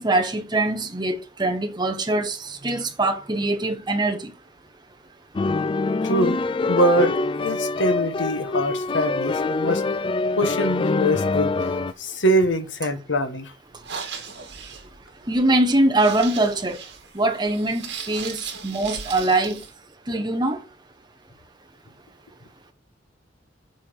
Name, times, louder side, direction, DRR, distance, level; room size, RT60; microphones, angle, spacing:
voice 1, 0.0-4.3 15.3-16.8 17.1-19.6 20.1-20.6, right 2 dB, 25° right, 1.2 m, -23 dB
sound 1, 5.4-11.9, left 3 dB, 30° left, 0.4 m, -24 dB
voice 2, 6.0-6.4 6.7-9.8 10.3-11.7 12.0-13.5, equal, 85° left, 1.6 m, -23 dB
sound 2, 13.7-19.7, right 6 dB, 65° right, 2.3 m, -37 dB
8.2 x 4.7 x 6.4 m
head